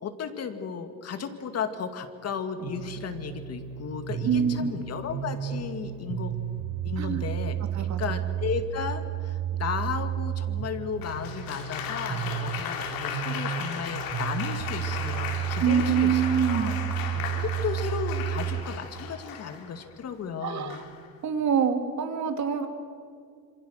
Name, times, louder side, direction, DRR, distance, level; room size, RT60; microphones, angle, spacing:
voice 1, 0.0-6.4 6.8-7.6 8.0-16.7 17.4-20.8, left 6 dB, 45° left, 7 dB, 2.2 m, -34 dB
sound 1, 2.6-18.6, right 10 dB, 80° right, 3.6 m, -32 dB
voice 2, 4.2-4.8 7.0-7.2 7.7-8.1 15.6-16.9 20.4-20.8 21.2-22.7, right 7 dB, 55° right, 6 dB, 2.6 m, -26 dB
Applause, 11.0-19.9 20.7-21.1, left 7 dB, 85° left, 3.2 m, -36 dB
26.5 x 26.0 x 6.5 m, 2.3 s
cardioid pair, 145°, 34 cm